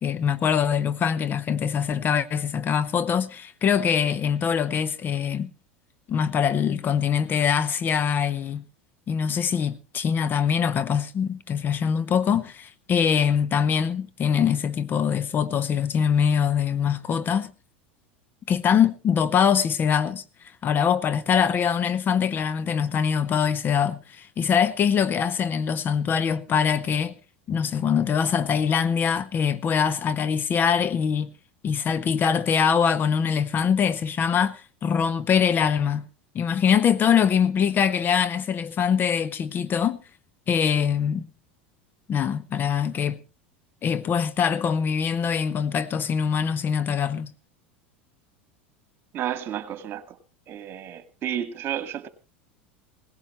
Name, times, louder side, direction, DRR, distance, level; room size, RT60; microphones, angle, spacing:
voice 1, 0.0-5.5 6.1-8.6 9.1-17.5 18.5-20.2 20.6-27.1 27.5-31.3 31.6-36.1 36.3-40.0 40.5-41.3 42.1-43.2 43.8-47.3, left 7 dB, 35° left, 0.8 m, -23 dB
voice 2, 49.1-50.2 50.5-52.1, right 10 dB, 40° right, 1.9 m, -31 dB
18.0 x 16.5 x 3.1 m
hypercardioid pair, 85°, 6 cm